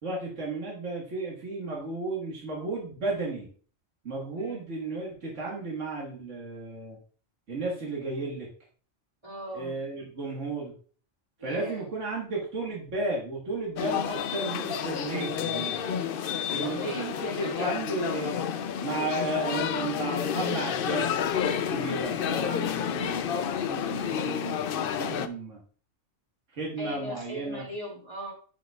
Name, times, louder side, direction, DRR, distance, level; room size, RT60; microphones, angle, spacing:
voice 1, 0.0-3.5 4.0-7.0 7.5-8.5 9.5-10.7 11.4-15.8 16.5-18.4 18.8-21.1 21.4-25.6 26.5-27.7, right 2 dB, 75° right, -3 dB, 1.9 m, -34 dB
voice 2, 9.2-9.7 11.4-11.8 16.6-17.7 26.8-28.3, equal, 20° right, -1 dB, 2.4 m, -39 dB
sound 1, 13.8-25.3, left 8 dB, 60° left, 0.6 m, -30 dB
9.7 x 5.4 x 2.3 m, 0.43 s
omnidirectional pair, 1.3 m